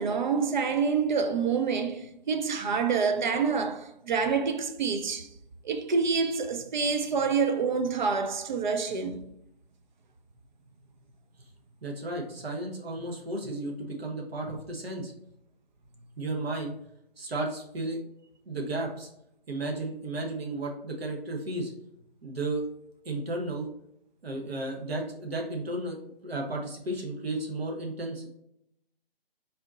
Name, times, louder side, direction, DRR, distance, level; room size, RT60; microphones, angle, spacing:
voice 1, 0.0-5.3 5.6-9.2, right 5 dB, 50° right, 0.5 m, -27 dB
voice 2, 11.8-15.1 16.2-16.7 17.2-18.1 18.5-19.1 19.5-21.7 22.2-22.6 23.0-23.7 24.2-26.0 26.2-28.3, right 2 dB, 75° right, 1.2 m, -33 dB
4.1 x 2.7 x 4.0 m
figure-of-eight pair, 150°, 30 cm